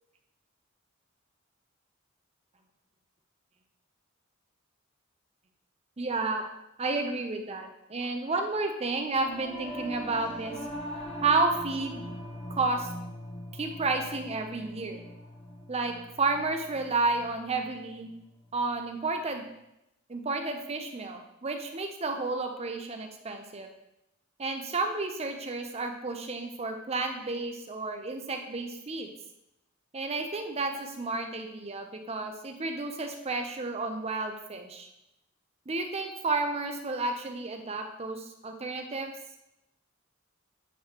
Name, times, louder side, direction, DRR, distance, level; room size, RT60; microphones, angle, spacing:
voice 1, 6.0-6.5 6.8-10.5 11.2-12.0 12.5-12.9 13.6-15.0 15.7-18.1 18.5-19.4 20.1-23.7 24.4-29.1 29.9-34.9 35.7-39.1, right 3 dB, 30° right, 5 dB, 0.6 m, -31 dB
Singing / Musical instrument, 9.1-18.7, equal, 30° left, 0.9 m, -42 dB
9.3 x 3.9 x 3.0 m, 0.86 s
head